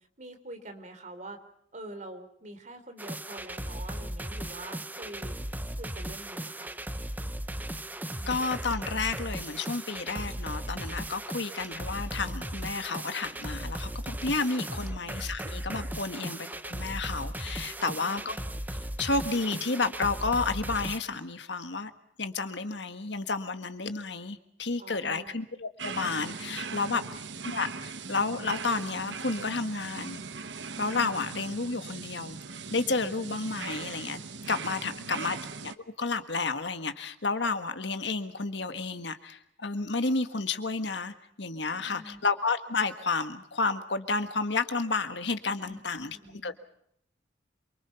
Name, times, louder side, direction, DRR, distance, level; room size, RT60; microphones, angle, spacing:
voice 1, 0.2-1.4 1.7-5.3 5.8-6.7 14.7-14.9 17.8-18.4 24.8-25.4 26.8-27.2 41.8-42.2 45.6-46.5, right 1 dB, 40° right, 7 dB, 3.4 m, -46 dB
sound 1, 3.0-21.0, right 1 dB, 10° right, 1.0 m, -37 dB
voice 2, 8.3-18.3 19.0-21.9 22.2-27.0 27.4-30.2 30.8-32.4 32.7-34.2 34.5-35.7 36.0-46.2 46.4-46.5, left 4 dB, 70° left, 9 dB, 1.7 m, -31 dB
sound 2, 25.8-35.8, right 5 dB, 70° right, 1.0 m, -40 dB
27.5 x 25.0 x 5.8 m, 0.71 s
head